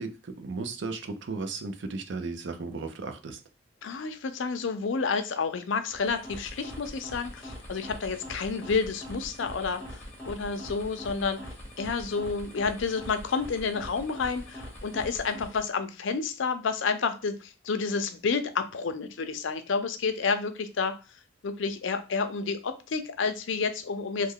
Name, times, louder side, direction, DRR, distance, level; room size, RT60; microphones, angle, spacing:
voice 1, 0.0-3.4, right 3 dB, 70° right, 8 dB, 0.5 m, -35 dB
voice 2, 3.8-11.4 11.8-20.9 21.4-24.3, left 5 dB, 75° left, 9 dB, 0.5 m, -30 dB
sound 1, 5.9-15.8, equal, 10° left, 0.9 m, -43 dB
3.2 x 2.1 x 3.6 m, 0.32 s
head